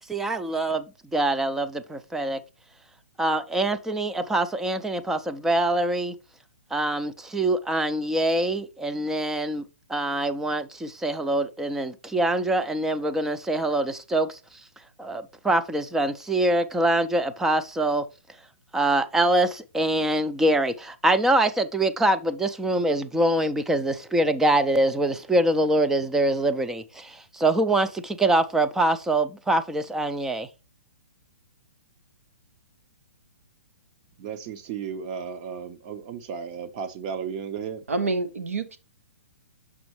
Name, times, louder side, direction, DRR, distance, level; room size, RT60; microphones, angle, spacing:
voice 1, 0.1-2.4 3.2-6.1 6.7-9.6 9.9-14.4 15.0-18.1 18.7-30.5, right 1 dB, 5° right, 0.4 m, -24 dB
voice 2, 34.2-37.8, right 7 dB, 40° right, 0.9 m, -34 dB
voice 3, 37.9-38.8, right 3 dB, 85° right, 1.1 m, -27 dB
6.1 x 5.9 x 3.1 m
hypercardioid pair, 135°, 7 cm